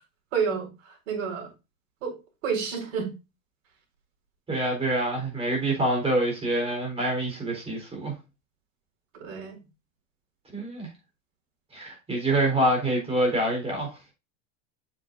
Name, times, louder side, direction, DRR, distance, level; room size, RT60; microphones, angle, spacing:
voice 1, 0.3-1.5 2.0-2.2 2.4-3.1 9.2-9.6, right 6 dB, 75° right, 4.8 m, -30 dB
voice 2, 4.5-8.1 10.5-10.9 11.7-14.0, right 1 dB, 15° right, 3.7 m, -26 dB
7.7 x 7.3 x 2.6 m
supercardioid pair, 145°, 40 cm